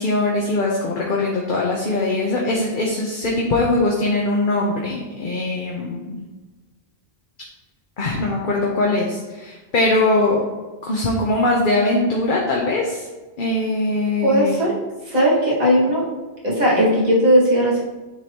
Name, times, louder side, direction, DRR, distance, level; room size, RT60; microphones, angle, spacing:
voice 1, 0.0-6.2 8.0-10.4 10.8-13.1 13.4-14.5, left 2 dB, 55° left, -2 dB, 1.0 m, -21 dB
voice 2, 14.2-14.7 15.1-16.1 16.4-17.8, equal, 45° right, -7 dB, 2.1 m, -17 dB
9.8 x 3.8 x 3.0 m, 1.2 s
omnidirectional pair, 1.0 m